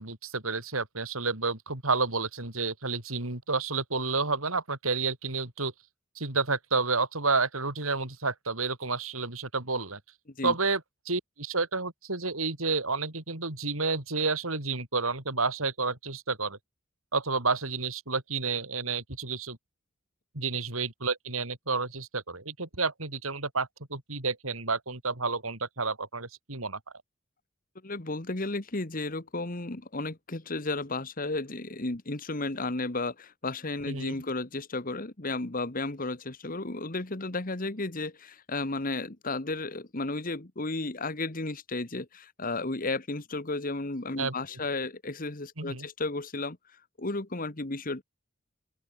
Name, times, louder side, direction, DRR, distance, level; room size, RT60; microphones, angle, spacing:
voice 1, 0.0-5.7 6.2-10.0 10.4-16.6 17.1-19.6 20.3-26.8 33.9-34.1 44.2-44.3 45.6-45.9, right 4 dB, 85° right, 4.6 m, -30 dB
voice 2, 27.8-46.6 47.0-48.0, left 2 dB, 40° left, 1.6 m, -33 dB
open air
head